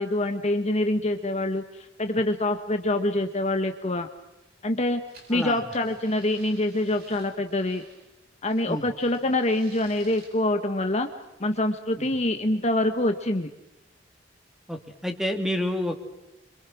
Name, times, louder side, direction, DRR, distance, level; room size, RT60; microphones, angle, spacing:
voice 1, 0.0-4.1 4.6-5.0 5.3-7.8 8.4-11.1 11.4-13.5, left 1 dB, 35° left, 6 dB, 1.4 m, -25 dB
sound 1, 5.1-8.1 8.5-10.3, right 3 dB, 55° right, 7.8 m, -52 dB
voice 2, 5.3-5.6 8.7-8.9 12.0-12.2 14.7-15.9, left 1 dB, ahead, 5 dB, 2.7 m, -29 dB
27.0 x 25.5 x 6.2 m, 0.93 s
head